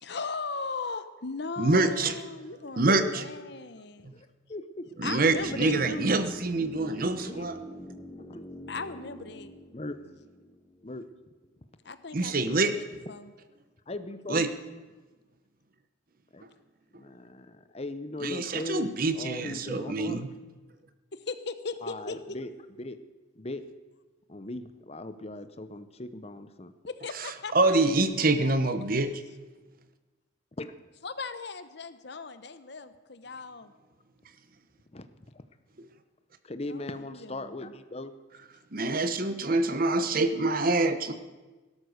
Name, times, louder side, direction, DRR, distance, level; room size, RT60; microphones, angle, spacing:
voice 1, 0.0-4.1 5.0-6.1 8.7-9.5 11.8-13.3 21.1-22.2 26.9-27.8 28.4-28.7 31.0-33.7 36.7-37.7, left 4 dB, 55° left, 11 dB, 1.0 m, -38 dB
voice 2, 1.6-2.2 2.8-3.2 4.0-4.1 5.0-7.6 12.1-12.7 14.3-14.5 18.2-20.3 27.1-29.2 38.7-41.1, right 2 dB, 45° right, 10 dB, 1.0 m, -26 dB
voice 3, 4.1-5.0 7.2-7.5 8.2-8.4 9.7-10.0 10.8-11.1 13.9-14.4 16.3-16.4 16.9-20.2 21.8-22.5 22.8-23.0 23.4-23.6 24.3-26.7 30.6-30.7 34.9-35.1 35.3-35.4 36.4-38.1, left 2 dB, 30° left, 11 dB, 0.8 m, -39 dB
sound 1, 5.2-11.2 11.4-11.5, equal, 10° left, 2.0 m, -44 dB
17.5 x 12.5 x 6.6 m, 1.2 s
head